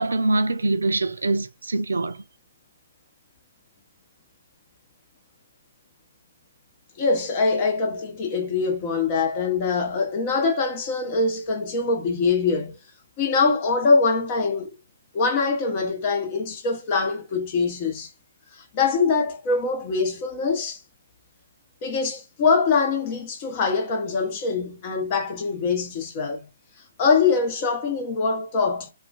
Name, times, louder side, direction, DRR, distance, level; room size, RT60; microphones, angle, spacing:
voice 1, 0.0-2.2, right 2 dB, 80° right, 0.4 m, -24 dB
voice 2, 7.0-12.8 13.2-14.7 15.1-18.1 18.5-20.8 21.8-26.5 27.0-28.9, left 4 dB, 35° left, 0.8 m, -23 dB
2.4 x 2.2 x 2.3 m
figure-of-eight pair, 135°, 0 cm